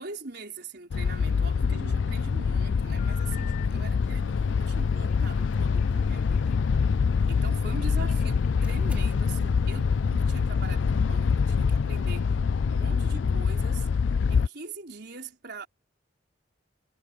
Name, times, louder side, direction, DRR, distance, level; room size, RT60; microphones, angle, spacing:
voice 1, 0.0-6.6 7.3-12.3 12.7-13.9 14.3-15.7, right 3 dB, 60° right, 4.5 m, -42 dB
sound 1, 0.9-14.5, left 5 dB, 75° left, 0.4 m, -25 dB
Telephone, 2.8-3.7 4.8-6.9 7.7-9.2, left 9 dB, 45° left, 7.6 m, -50 dB
sound 2, 3.3-10.3, equal, 5° right, 2.6 m, -54 dB
head